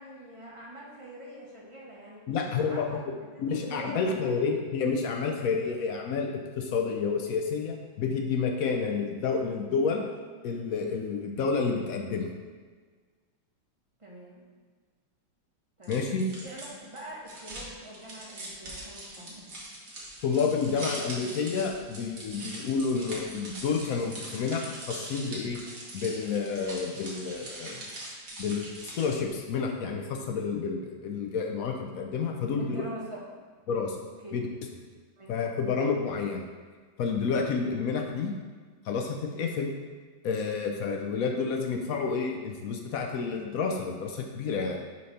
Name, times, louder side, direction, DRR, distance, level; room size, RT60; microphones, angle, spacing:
voice 1, 0.0-3.0 3.5-4.5 14.0-14.4 15.8-16.0 16.4-19.6 32.5-33.2 34.2-34.4 35.2-35.3, right 1 dB, 25° right, -4 dB, 0.8 m, -44 dB
voice 2, 2.3-3.0 3.4-10.1 10.4-12.3 15.9-16.3 20.2-25.6 25.9-27.9 28.4-32.8 33.7-34.0 34.3-34.5 35.3-36.5 37.0-38.4 38.8-39.7 40.2-44.8, left 5 dB, 75° left, 2 dB, 0.8 m, -29 dB
sound 1, 15.8-29.3, right 1 dB, 45° right, 1.6 m, -42 dB
6.7 x 3.2 x 5.5 m, 1.5 s
omnidirectional pair, 2.1 m